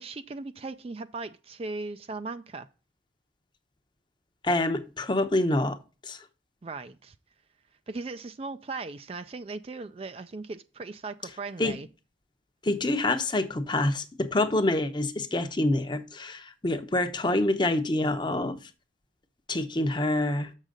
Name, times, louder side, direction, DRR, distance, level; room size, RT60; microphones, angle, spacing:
voice 1, 0.0-2.7 6.6-7.1 7.9-11.9, right 3 dB, 30° right, 0.4 m, -38 dB
voice 2, 4.4-5.8 6.0-6.2 11.6-11.7 12.6-18.7 19.5-20.5, left 2 dB, 25° left, 0.7 m, -26 dB
7.4 x 6.5 x 3.7 m
head